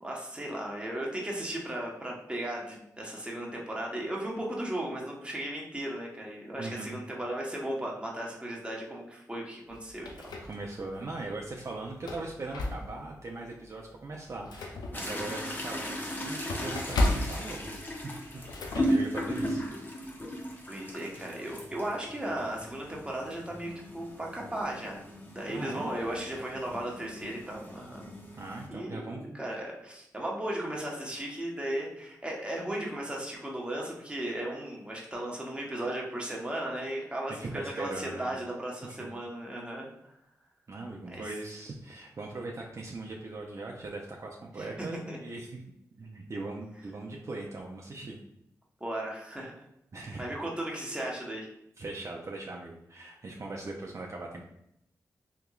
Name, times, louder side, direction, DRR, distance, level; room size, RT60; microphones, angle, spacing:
voice 1, 0.0-10.1 15.0-15.3 20.7-25.0 25.3-28.1 28.7-40.1 41.1-41.2 44.6-45.2 48.8-49.5 50.2-51.5, right 1 dB, 15° right, -2 dB, 1.0 m, -36 dB
voice 2, 6.6-6.9 10.4-17.8 18.0-18.4 18.7-19.6 25.5-25.9 28.4-29.4 37.4-38.3 38.8-39.1 40.7-45.6 46.0-48.2 49.9-50.3 51.8-54.4, right 2 dB, 45° right, -1 dB, 0.5 m, -40 dB
sound 1, 9.7-11.0 11.4-11.5 11.9-13.2 13.6-13.8 14.1-18.8, left 2 dB, 90° left, 0.4 m, -34 dB
sound 2, 14.9-28.7, equal, 30° left, 0.9 m, -37 dB
3.5 x 2.9 x 2.4 m, 0.77 s
cardioid pair, 45°, 7 cm